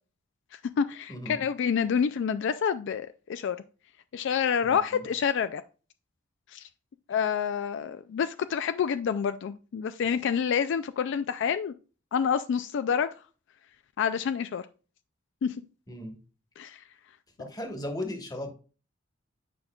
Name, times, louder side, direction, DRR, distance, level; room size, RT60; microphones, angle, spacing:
voice 1, 0.5-3.6 4.1-5.6 6.5-6.7 7.1-11.7 12.1-13.1 14.0-14.6 15.4-15.5 16.6-16.8, left 7 dB, 60° left, 0.3 m, -28 dB
voice 2, 1.1-1.4 4.6-5.0 15.9-16.2 17.4-18.5, left 1 dB, 20° left, 1.2 m, -36 dB
9.1 x 5.1 x 2.3 m
head